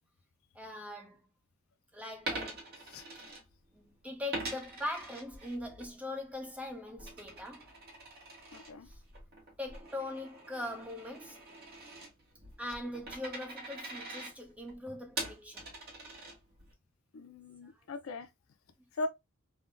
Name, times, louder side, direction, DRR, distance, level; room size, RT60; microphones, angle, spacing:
voice 1, 0.5-1.2 1.9-2.7 3.8-7.7 8.9-9.0 9.6-11.5 12.6-15.7 17.6-17.8, left 1 dB, 5° right, 0.6 m, -41 dB
Coin (dropping), 2.3-3.9 4.3-5.9 6.3-16.7, right 2 dB, 50° right, 1.1 m, -44 dB
voice 2, 8.5-8.9 17.1-18.3 18.9-19.1, left 2 dB, 70° left, 0.4 m, -39 dB
3.6 x 2.2 x 2.4 m
head